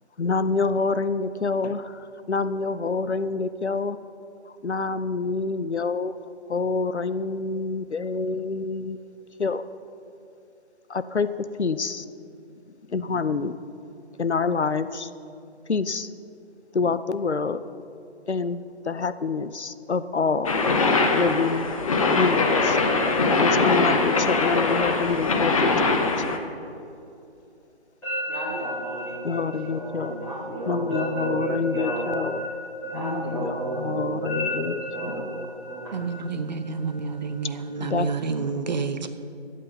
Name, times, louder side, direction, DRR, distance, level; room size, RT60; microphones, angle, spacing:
voice 1, 0.2-4.0 4.6-6.2 6.5-9.0 9.4-9.6 10.9-11.3 11.6-12.1 12.9-13.6 14.2-15.1 15.7-16.1 16.7-17.6 18.3-20.5 21.1-21.7 22.1-22.8 23.4-26.1 29.2-30.2 30.7-32.4 32.9-35.5 37.8-38.1, left 4 dB, 90° left, 0.6 m, -27 dB
sound 1, 20.4-26.4, left 3 dB, 30° left, 0.8 m, -22 dB
voice 2, 28.0-32.5 32.8-37.7, right 1 dB, 5° left, 1.3 m, -32 dB
voice 3, 35.9-39.1, right 4 dB, 40° right, 0.7 m, -29 dB
11.5 x 8.4 x 5.4 m
figure-of-eight pair, 145°, 33 cm